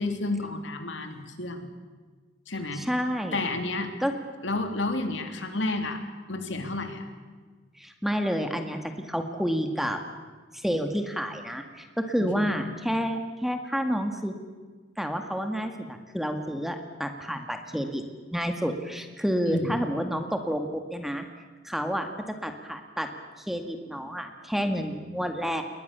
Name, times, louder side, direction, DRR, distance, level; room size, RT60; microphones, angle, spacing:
voice 1, 0.0-1.7 2.5-2.8 3.3-3.9 4.4-6.0 6.3-7.1 12.2-12.6 19.5-19.7, left 2 dB, 70° left, 5 dB, 3.3 m, -31 dB
voice 2, 2.7-3.4 4.0-4.1 7.8-8.8 9.1-10.0 10.5-14.3 15.0-18.0 18.3-21.3 21.6-23.1 23.5-25.6, equal, ahead, 5 dB, 1.9 m, -29 dB
29.5 x 21.5 x 6.9 m, 1.4 s
head